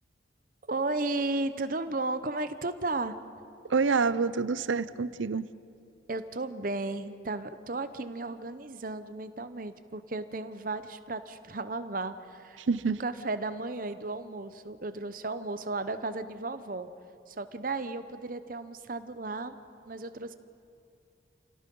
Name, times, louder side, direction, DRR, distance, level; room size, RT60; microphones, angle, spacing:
voice 1, 0.7-3.2 6.1-12.6 12.9-16.9 17.3-19.6 19.8-20.3, right 2 dB, 45° right, 11 dB, 0.9 m, -34 dB
voice 2, 3.7-5.5 12.7-13.0, right 4 dB, 85° right, 16 dB, 0.6 m, -27 dB
28.5 x 17.5 x 5.5 m, 2.6 s
head